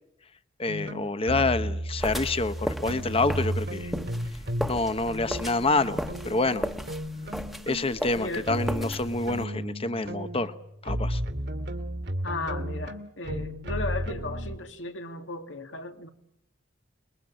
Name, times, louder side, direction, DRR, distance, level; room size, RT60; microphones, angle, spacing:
voice 1, 0.6-3.9 4.7-6.0 6.2-6.7 7.7-10.5 10.8-11.2, left 3 dB, 30° left, 1.0 m, -27 dB
sound 1, 0.7-4.7 5.1-14.6, equal, 60° right, 2.2 m, -34 dB
sound 2, 2.0-9.4, equal, ahead, 1.2 m, -36 dB
voice 2, 8.1-8.5 12.2-16.1, left 3 dB, 75° left, 2.2 m, -35 dB
28.5 x 21.5 x 8.8 m
head